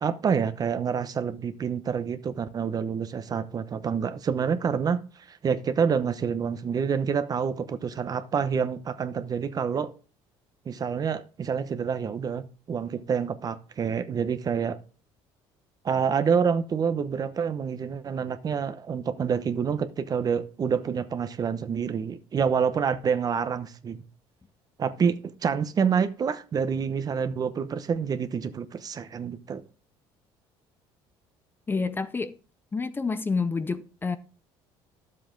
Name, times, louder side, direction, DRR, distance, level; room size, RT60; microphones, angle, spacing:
voice 1, 0.0-5.0 5.3-9.9 10.7-14.8 15.8-24.0 24.8-25.2 25.4-29.6, right 6 dB, 35° right, 0.9 m, -27 dB
voice 2, 31.7-32.3 32.7-34.2, left 4 dB, 20° left, 0.6 m, -28 dB
11.5 x 7.6 x 3.8 m
cardioid pair, 110°, 11 cm